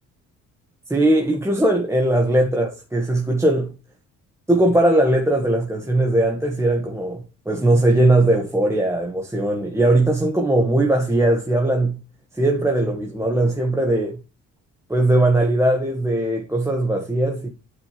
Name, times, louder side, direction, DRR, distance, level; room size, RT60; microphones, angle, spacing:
voice 1, 0.9-3.7 4.5-12.0 12.3-14.2 14.9-17.5, right 1 dB, 10° right, 1.7 m, -19 dB
11.0 x 5.2 x 3.3 m
cardioid pair, 90°, 30 cm